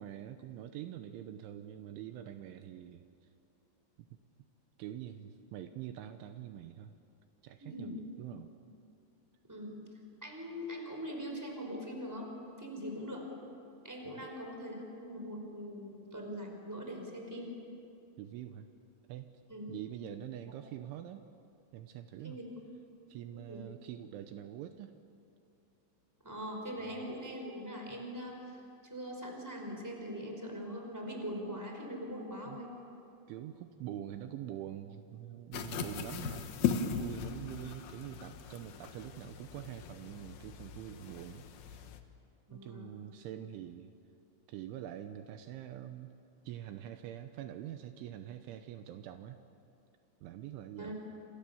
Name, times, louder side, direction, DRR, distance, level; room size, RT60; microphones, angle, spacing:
voice 1, 0.0-3.3 4.0-4.1 4.8-6.9 7.4-8.5 14.1-14.3 18.2-18.7 19.1-19.3 19.7-21.2 21.7-22.4 23.1-24.9 26.8-26.9 32.5-32.6 33.3-41.8 42.5-43.9 44.5-46.1 46.4-49.4 50.2-51.0, right 11 dB, 80° right, 8 dB, 3.2 m, -45 dB
voice 2, 7.6-7.9 9.5-9.8 10.2-12.3 12.6-13.2 13.8-17.5 19.5-19.7 22.2-22.4 23.3-23.7 26.2-32.7 42.5-42.9 50.8-51.0, equal, 5° right, 1 dB, 4.6 m, -42 dB
sound 1, 35.5-42.0, left 8 dB, 70° left, 2.5 m, -38 dB
29.0 x 27.5 x 7.1 m, 2.7 s
omnidirectional pair, 5.8 m